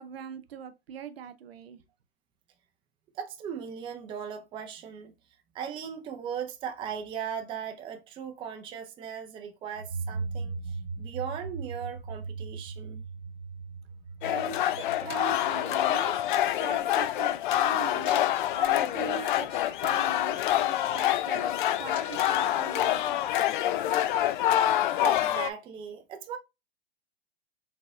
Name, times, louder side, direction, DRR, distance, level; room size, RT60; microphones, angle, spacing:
voice 1, 0.0-1.8 14.2-18.2 18.5-23.5, right 8 dB, 70° right, 0.8 m, -42 dB
voice 2, 3.1-5.1 5.5-13.0 24.6-24.7 25.0-26.4, right 8 dB, 15° right, 0.5 m, -38 dB
sound 1, 9.7-16.3, right 4 dB, ahead, 1.9 m, -38 dB
sound 2, 14.2-25.5, left 12 dB, 50° left, 0.5 m, -26 dB
sound 3, 18.0-19.9 20.2-20.5 20.8-21.3 21.7-23.4 24.0-24.1, left 3 dB, 35° left, 2.2 m, -50 dB
4.0 x 3.6 x 2.3 m
hypercardioid pair, 120°, 31 cm